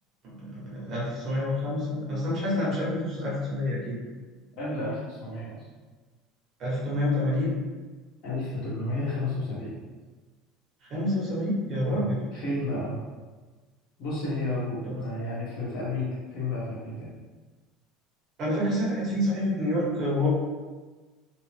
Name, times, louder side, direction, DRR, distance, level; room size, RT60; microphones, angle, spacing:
voice 1, 0.2-4.0 6.6-7.6 10.9-12.2 15.0-15.1 18.4-20.3, left 1 dB, 40° right, -6 dB, 0.9 m, -28 dB
voice 2, 4.6-5.6 8.2-9.8 11.9-13.0 14.0-16.0 16.3-17.1, left 2 dB, 55° left, -7 dB, 1.1 m, -32 dB
2.9 x 2.0 x 3.1 m, 1.3 s
cardioid pair, 155°, 0 cm